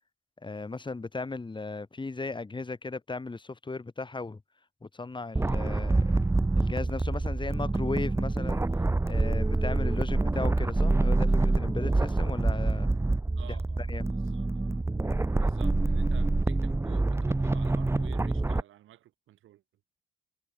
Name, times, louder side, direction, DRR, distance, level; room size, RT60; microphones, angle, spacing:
voice 1, 0.4-4.4 4.8-6.2 6.6-8.6 9.1-12.9 13.8-14.0, left 3 dB, 25° left, 6.1 m, -36 dB
sound 1, 5.3-18.6, right 2 dB, 15° right, 0.9 m, -26 dB
voice 2, 13.4-14.5 15.4-19.6, right 13 dB, 80° right, 7.0 m, -52 dB
cardioid pair, 90°, 20 cm